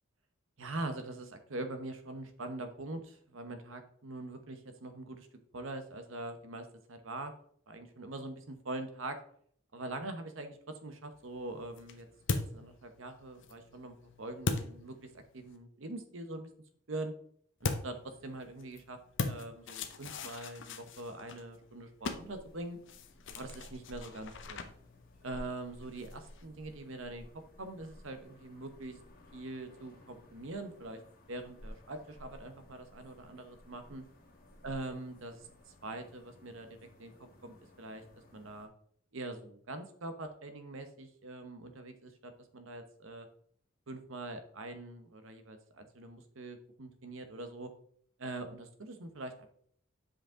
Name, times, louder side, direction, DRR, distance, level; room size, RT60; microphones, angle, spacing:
voice 1, 0.6-5.3 5.5-7.3 7.7-9.2 9.7-16.5 16.9-17.1 17.6-19.0 19.2-22.8 23.3-24.7 25.2-29.0 29.3-31.0 31.3-34.0 34.6-36.7 37.0-37.1 37.4-38.0 38.3-38.7 39.1-43.3 43.9-47.7 48.2-49.5, right 2 dB, 65° right, 8 dB, 0.9 m, -43 dB
sound 1, 11.1-15.6 17.6-26.4, left 4 dB, 60° left, 0.7 m, -41 dB
sound 2, 22.2-38.7, left 1 dB, 45° left, 1.9 m, -55 dB
7.7 x 5.0 x 3.7 m, 0.62 s
head